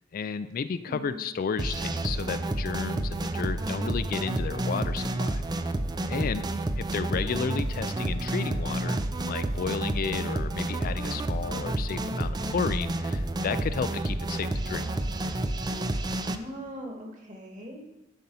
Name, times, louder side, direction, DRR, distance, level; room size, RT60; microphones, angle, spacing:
voice 1, 0.1-5.4 6.1-6.5 6.8-14.8, left 6 dB, 45° left, 12 dB, 0.3 m, -32 dB
voice 2, 0.7-1.2 16.2-17.9, equal, 40° right, 1 dB, 1.9 m, -40 dB
sound 1, 1.6-16.4, right 1 dB, 20° right, 0.4 m, -30 dB
11.5 x 4.3 x 5.5 m, 0.96 s
head